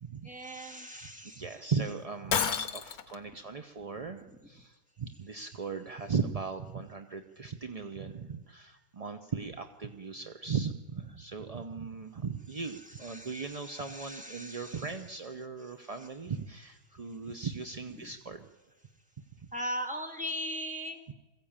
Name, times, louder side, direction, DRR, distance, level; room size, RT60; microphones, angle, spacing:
voice 1, 0.2-1.5 4.4-4.5 13.0-14.9 18.0-18.1 19.5-21.0, equal, 5° right, 3 dB, 2.0 m, -39 dB
voice 2, 1.2-18.5 19.4-19.5, right 5 dB, 40° right, 7 dB, 0.5 m, -38 dB
Shatter, 2.3-3.2, left 7 dB, 70° left, 1.4 m, -30 dB
21.5 x 15.0 x 8.8 m, 1.2 s
omnidirectional pair, 1.7 m